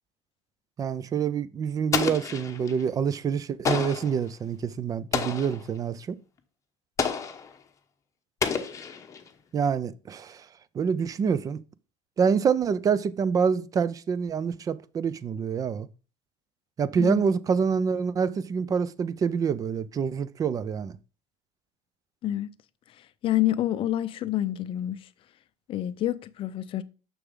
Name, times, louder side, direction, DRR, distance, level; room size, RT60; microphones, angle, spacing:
voice 1, 0.8-6.2 9.5-10.4 10.7-11.6 12.2-15.9 16.8-21.0, right 6 dB, 25° right, 0.4 m, -26 dB
Explosion, 1.9-2.8 3.6-4.2 5.1-5.7 7.0-7.5 8.4-9.3, left 6 dB, 20° left, 0.9 m, -29 dB
voice 2, 23.2-25.0 25.7-26.8, left 13 dB, 35° left, 0.5 m, -27 dB
6.6 x 6.1 x 3.6 m
cardioid pair, 140°, 15 cm